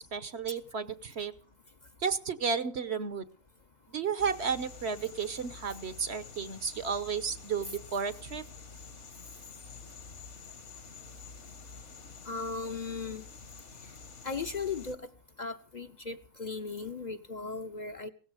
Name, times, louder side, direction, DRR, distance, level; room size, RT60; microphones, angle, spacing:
voice 1, 0.0-1.3 2.0-3.3 3.9-8.4, right 6 dB, 55° right, 14 dB, 1.2 m, -33 dB
sound 1, 4.2-14.9, left 4 dB, 60° left, 2.0 m, -48 dB
voice 2, 12.2-13.2 14.2-15.1 15.4-18.1, left 4 dB, 40° left, 7 dB, 0.9 m, -37 dB
17.5 x 14.5 x 5.0 m, 0.39 s
omnidirectional pair, 1.4 m